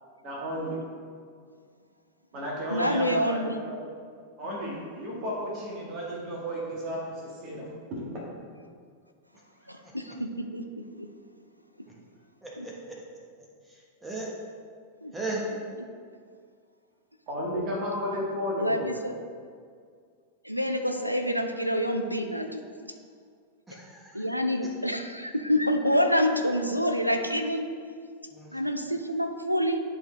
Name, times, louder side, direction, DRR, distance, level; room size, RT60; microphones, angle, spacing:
voice 1, 0.2-0.8 2.3-3.8 4.4-8.2 17.3-19.0, equal, 40° right, -4 dB, 1.6 m, -33 dB
voice 2, 2.7-3.5 9.7-10.6 11.0-11.1 12.6-12.7 15.0-15.1 18.6-19.1 20.4-22.6 24.1-27.7 28.5-29.8, equal, 90° right, 5 dB, 0.5 m, -27 dB
voice 3, 12.4-13.0 14.0-14.3 15.1-15.4 23.7-24.2 24.6-24.7 28.3-28.5, right 3 dB, 10° right, -4 dB, 1.2 m, -36 dB
11.0 x 3.9 x 3.2 m, 2.1 s
figure-of-eight pair, 90°, 0 cm